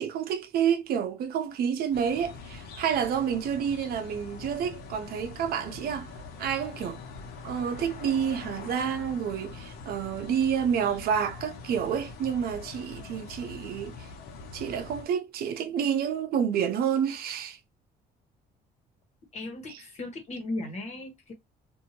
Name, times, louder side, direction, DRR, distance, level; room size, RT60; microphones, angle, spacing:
voice 1, 0.0-6.1 6.4-7.0 7.4-14.1 14.5-17.6 19.7-19.8, right 8 dB, 65° right, 0.7 m, -29 dB
sound 1, 1.9-15.1, left 4 dB, 75° left, 1.0 m, -43 dB
voice 2, 19.3-21.3, left 2 dB, 40° left, 1.4 m, -36 dB
2.7 x 2.6 x 2.8 m
cardioid pair, 110°, 17 cm